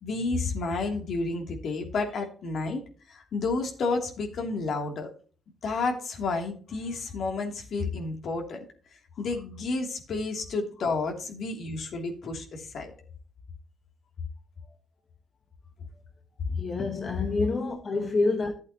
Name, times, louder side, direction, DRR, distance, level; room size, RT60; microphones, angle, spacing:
voice 1, 0.0-2.8 3.1-5.1 5.6-8.7 9.2-12.9, left 3 dB, 65° left, 2.8 m, -31 dB
voice 2, 16.5-18.5, left 3 dB, 40° left, 1.3 m, -27 dB
12.0 x 8.2 x 2.9 m
cardioid pair, 90°, 0 cm